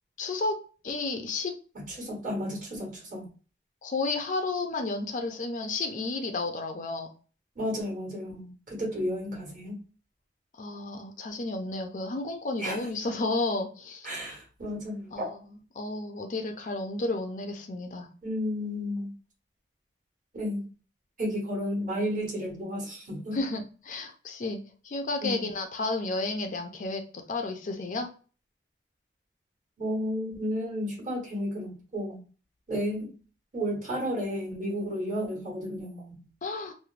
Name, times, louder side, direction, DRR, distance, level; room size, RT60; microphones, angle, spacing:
voice 1, 0.2-0.5 0.8-1.5 3.8-7.1 10.6-14.1 15.1-15.2 15.7-18.1 23.3-24.6 24.8-27.0 27.3-28.1 36.4-36.7, left 3 dB, 45° left, 4 dB, 0.4 m, -32 dB
voice 2, 1.7-3.3 7.5-9.8 12.6-12.9 14.0-15.3 18.2-19.1 20.3-20.6 21.2-23.4 25.2-25.5 29.8-32.2 32.7-33.2 33.5-36.2, equal, 45° right, -3 dB, 1.3 m, -32 dB
3.1 x 2.1 x 2.4 m, 0.37 s
head